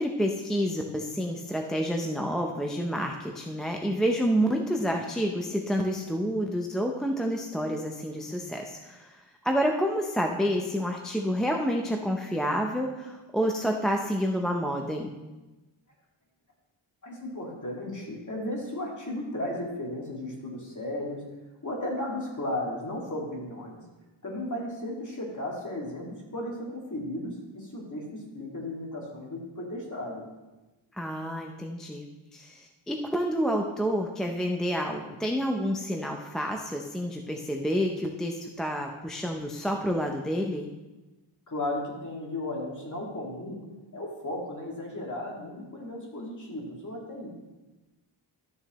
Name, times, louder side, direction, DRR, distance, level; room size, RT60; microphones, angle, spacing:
voice 1, 0.0-15.1 30.9-32.1 32.3-40.7, equal, ahead, 2 dB, 0.5 m, -29 dB
voice 2, 17.0-21.2 21.6-23.8 24.2-30.2 41.5-43.6 43.9-47.3, left 1 dB, 35° left, -2 dB, 2.1 m, -35 dB
12.5 x 7.0 x 3.0 m, 1.1 s
wide cardioid pair, 145°, 50 cm